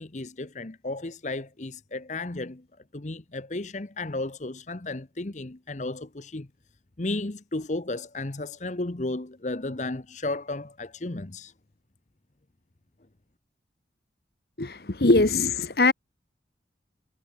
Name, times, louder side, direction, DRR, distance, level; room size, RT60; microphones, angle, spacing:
voice 1, 0.0-2.6 2.9-6.5 7.0-11.5, left 2 dB, 40° left, 1.0 m, -33 dB
voice 2, 14.6-15.9, left 2 dB, 60° left, 1.3 m, -21 dB
head